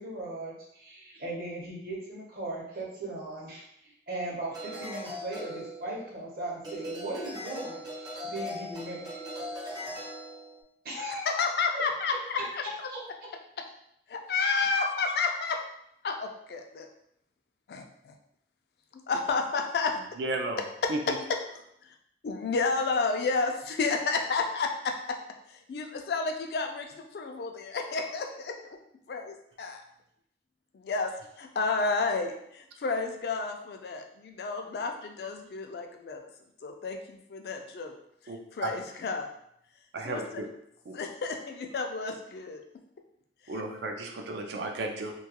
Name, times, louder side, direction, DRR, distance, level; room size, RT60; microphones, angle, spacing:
voice 1, 0.0-9.8 10.8-11.5 11.7-11.8 12.9-13.0, right 1 dB, 55° right, -3 dB, 0.7 m, -38 dB
sound 1, 4.5-6.2 6.6-10.6, equal, 20° right, 0.4 m, -39 dB
voice 2, 11.2-12.4 12.8-12.9 14.1-15.6 16.0-16.9 17.7-18.1 19.1-19.9 21.1-21.4 21.8-21.9 22.2-25.2 25.5-28.8 29.1-29.8 30.7-36.2 36.6-37.9 38.5-39.3 40.0-40.4 40.9-42.6 43.4-43.6, left 4 dB, 65° left, 4 dB, 0.3 m, -31 dB
voice 3, 20.2-20.6 20.9-21.2 38.3-38.7 39.9-40.5 40.9-41.0 43.5-45.1, right 2 dB, 80° right, 3 dB, 0.4 m, -34 dB
2.3 x 2.2 x 2.8 m, 0.74 s
head